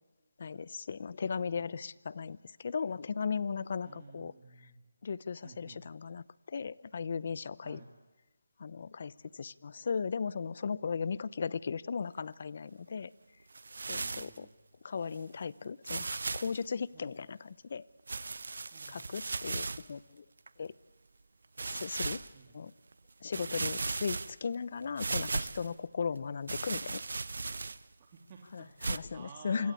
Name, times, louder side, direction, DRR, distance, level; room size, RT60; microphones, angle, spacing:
voice 1, 0.4-4.3 5.0-7.8 8.6-13.1 13.9-14.5 14.8-17.8 18.9-20.2 20.6-20.7 21.6-22.2 22.5-22.7 23.2-27.0 28.5-29.7, left 5 dB, 45° left, 20 dB, 0.8 m, -37 dB
voice 2, 1.3-1.7 3.8-4.8 5.4-5.8 7.6-7.9 13.9-14.5 16.9-17.1 18.7-19.1 22.3-22.6 23.3-23.6 26.1-26.3 28.0-29.7, right 5 dB, 25° right, 1 dB, 2.7 m, -54 dB
sound 1, 13.5-14.4 15.1-15.2 15.8-16.6 18.1-19.9 20.5-20.6 21.6-22.3 22.9-23.0 23.3-24.6 25.0-25.7 26.5-27.9 28.8-29.0, right 3 dB, 65° right, 1.1 m, -36 dB
27.5 x 25.0 x 8.6 m, 1.2 s
figure-of-eight pair, 165°, 0 cm